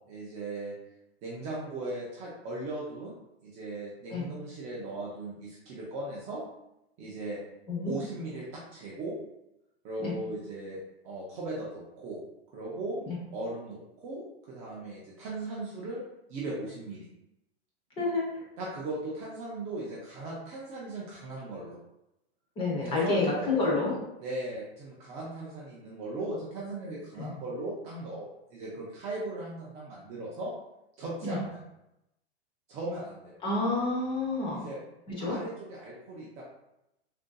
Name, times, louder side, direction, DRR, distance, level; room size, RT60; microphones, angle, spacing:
voice 1, 0.1-0.7 1.2-3.1 3.4-6.4 7.0-7.4 7.9-9.2 9.8-10.8 11.0-12.2 12.5-13.0 13.3-16.0 16.3-17.1 18.6-21.8 22.8-23.8 24.2-30.5 31.0-31.6 32.7-33.4 34.5-34.8 35.2-36.4, right 2 dB, 20° right, -5 dB, 0.4 m, -38 dB
voice 2, 18.0-18.3 22.6-23.9 27.2-27.3 31.2-31.4 33.4-34.7 35.1-35.4, left 3 dB, 15° left, -3 dB, 0.6 m, -29 dB
3.6 x 2.6 x 2.2 m, 0.86 s
supercardioid pair, 150°, 32 cm